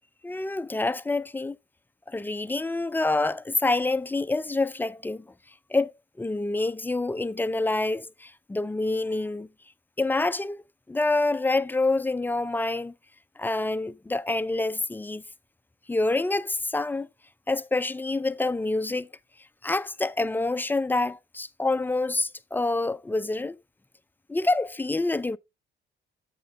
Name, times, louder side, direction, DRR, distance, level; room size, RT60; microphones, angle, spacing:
voice 1, 0.2-1.6 2.1-5.2 5.7-5.9 6.2-9.5 10.0-10.6 10.9-12.9 13.4-15.2 15.9-17.1 17.5-19.1 19.6-23.6 24.3-25.4, left 2 dB, 10° left, 0.4 m, -27 dB
7.8 x 6.7 x 3.3 m
cardioid pair, 90°, 20 cm